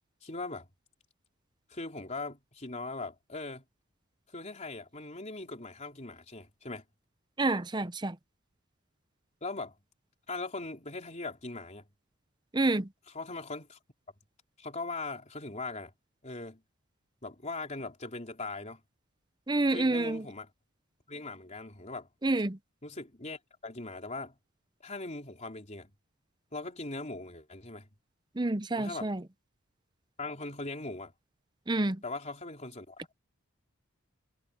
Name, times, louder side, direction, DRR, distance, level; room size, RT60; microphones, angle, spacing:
voice 1, 0.2-0.7 1.7-3.6 4.3-6.8 9.4-9.8 10.3-11.9 13.1-13.8 14.6-15.9 16.2-16.6 17.2-18.8 19.7-20.5 21.1-22.1 22.8-24.4 24.8-25.9 26.5-27.9 28.8-29.1 30.2-31.1 32.0-33.0, left 3 dB, 30° left, 3.7 m, -40 dB
voice 2, 7.4-8.1 12.5-12.9 19.5-20.2 22.2-22.6 28.4-29.2 31.7-32.0, right 2 dB, 20° right, 0.6 m, -28 dB
head